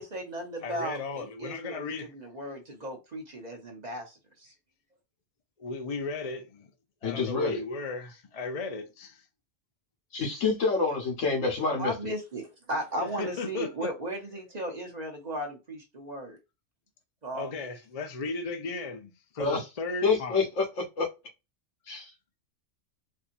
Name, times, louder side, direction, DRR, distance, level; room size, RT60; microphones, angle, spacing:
voice 1, 0.0-4.5 11.8-16.4 17.2-17.7, right 1 dB, 40° right, 0.9 m, -36 dB
voice 2, 0.6-2.1 5.6-6.7 7.0-9.2 13.0-13.9 17.3-20.5, left 3 dB, 40° left, 0.5 m, -35 dB
voice 3, 7.0-7.6 10.1-11.9 19.4-19.6 20.0-21.1 21.9-22.1, left 4 dB, 85° left, 1.5 m, -27 dB
4.2 x 2.8 x 2.6 m
omnidirectional pair, 1.3 m